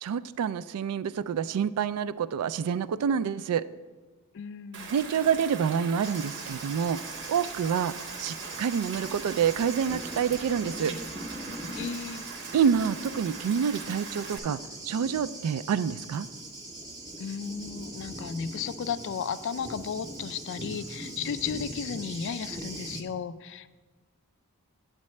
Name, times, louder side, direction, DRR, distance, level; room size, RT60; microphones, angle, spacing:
voice 1, 0.0-3.6 4.9-7.0 7.3-10.9 12.5-14.6 14.8-16.3, right 7 dB, 80° right, 16 dB, 0.3 m, -27 dB
voice 2, 4.3-4.9 11.7-12.2 17.2-23.7, left 7 dB, 55° left, 14 dB, 0.3 m, -34 dB
Rain, 4.7-14.4, right 5 dB, 55° right, 0.8 m, -41 dB
Thunder, 6.0-23.0, right 1 dB, 15° right, 0.7 m, -41 dB
8.7 x 8.2 x 3.2 m, 1.3 s
head